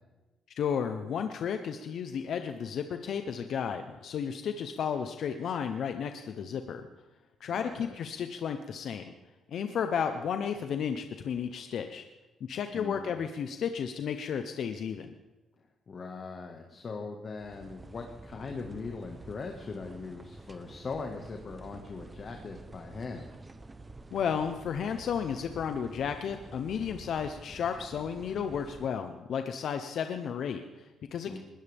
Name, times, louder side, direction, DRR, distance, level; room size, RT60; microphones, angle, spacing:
voice 1, 0.6-6.8 7.4-9.0 9.5-12.0 12.4-15.1 24.1-31.4, left 7 dB, 65° left, 7 dB, 1.0 m, -33 dB
voice 2, 7.5-7.9 12.7-13.2 15.9-23.3 31.2-31.4, left 4 dB, 45° left, 2 dB, 1.8 m, -40 dB
sound 1, 17.4-28.9, right 2 dB, 20° right, 1.0 m, -49 dB
20.5 x 18.0 x 3.6 m, 1.1 s
cardioid pair, 90°, 0 cm